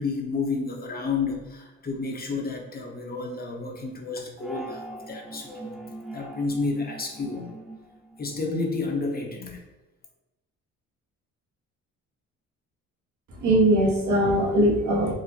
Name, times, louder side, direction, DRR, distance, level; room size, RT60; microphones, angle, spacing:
voice 1, 0.0-5.8 6.1-7.5 8.2-9.6, left 4 dB, 30° left, 1 dB, 0.6 m, -30 dB
sound 1, 4.4-9.0, right 2 dB, ahead, 0.3 m, -43 dB
voice 2, 13.3-15.1, right 1 dB, 70° right, -2 dB, 1.0 m, -21 dB
3.7 x 2.1 x 2.8 m, 1.1 s
cardioid pair, 90°, 30 cm